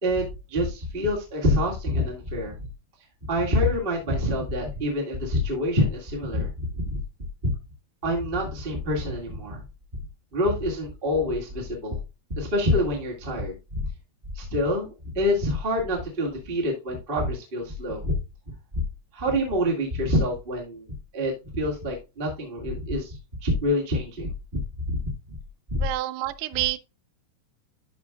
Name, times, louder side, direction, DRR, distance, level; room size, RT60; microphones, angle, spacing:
voice 1, 0.0-2.7 3.3-7.0 7.4-7.5 8.0-9.6 10.3-12.0 12.4-13.8 14.3-14.9 15.1-18.1 18.7-18.8 19.1-20.9 21.1-23.1 23.4-25.0 25.7-25.8, left 1 dB, 30° right, 1.0 m, -26 dB
voice 2, 25.8-26.8, right 17 dB, 85° right, 2.6 m, -28 dB
12.0 x 5.0 x 2.4 m
omnidirectional pair, 4.8 m